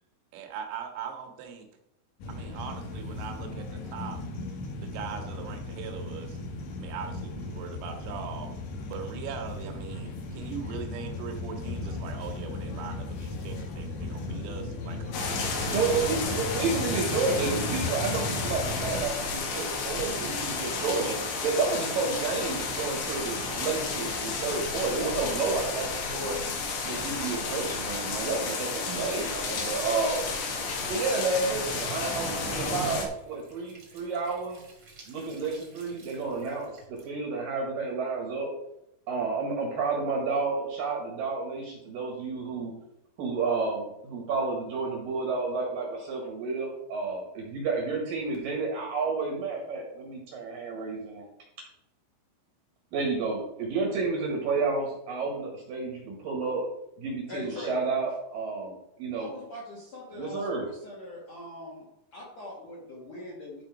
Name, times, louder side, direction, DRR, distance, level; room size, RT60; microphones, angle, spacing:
voice 1, 0.3-1.7 2.3-4.2 4.8-6.4 6.8-8.5 8.9-15.3 15.7-16.2, right 7 dB, 90° right, 3 dB, 4.2 m, -40 dB
sound 1, 2.2-19.0, left 3 dB, 85° left, 1.9 m, -36 dB
sound 2, 15.1-33.1, left 4 dB, 65° left, 3.8 m, -32 dB
voice 2, 15.7-21.2 21.4-26.4 26.8-30.3 30.9-34.6 35.1-38.5 39.1-42.7 43.2-51.3 52.9-56.7 57.0-59.3 60.2-60.7, right 4 dB, 65° right, 0 dB, 2.4 m, -30 dB
Squeak / Sink (filling or washing) / Trickle dribble, 29.2-37.1, right 2 dB, 45° right, 1.6 m, -50 dB
voice 3, 57.3-57.8 59.2-63.6, left 1 dB, 50° left, -3 dB, 2.2 m, -42 dB
13.0 x 5.0 x 4.8 m, 0.82 s
omnidirectional pair, 5.9 m